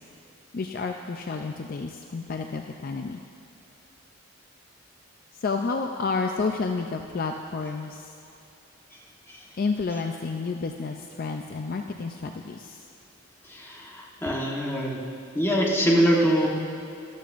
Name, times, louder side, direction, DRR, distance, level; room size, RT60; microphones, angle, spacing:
voice 1, 0.5-3.2 5.4-8.1 9.6-12.9, left 4 dB, 45° left, 4 dB, 0.4 m, -30 dB
voice 2, 13.5-15.0 15.3-16.5, equal, 10° left, -4 dB, 1.2 m, -24 dB
14.0 x 12.0 x 2.5 m, 2.8 s
head